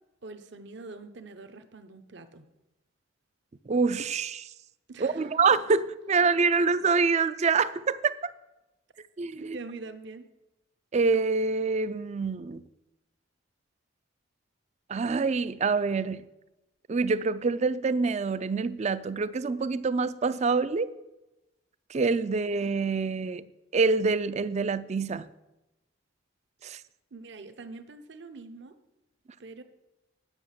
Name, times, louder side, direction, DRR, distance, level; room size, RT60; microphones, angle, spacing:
voice 1, 0.2-2.5 4.9-5.4 9.4-10.3 27.1-28.8 29.4-29.6, right 3 dB, 60° right, 9 dB, 0.9 m, -44 dB
voice 2, 3.7-4.5 5.0-8.3 9.2-9.6 10.9-12.6 14.9-16.2 16.9-20.9 21.9-23.5 23.7-25.3 26.6-26.8, right 4 dB, 35° right, 16 dB, 0.4 m, -26 dB
9.8 x 6.3 x 7.4 m, 0.97 s
head